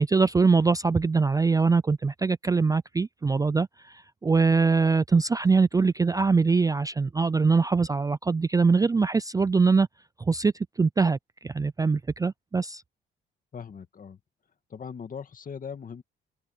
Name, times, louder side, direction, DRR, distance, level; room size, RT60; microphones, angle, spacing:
voice 1, 0.0-9.9 10.3-12.8, right 4 dB, 15° right, 0.4 m, -23 dB
voice 2, 13.5-14.2 14.7-16.0, left 6 dB, 45° left, 2.2 m, -39 dB
open air
cardioid pair, 90°, 20 cm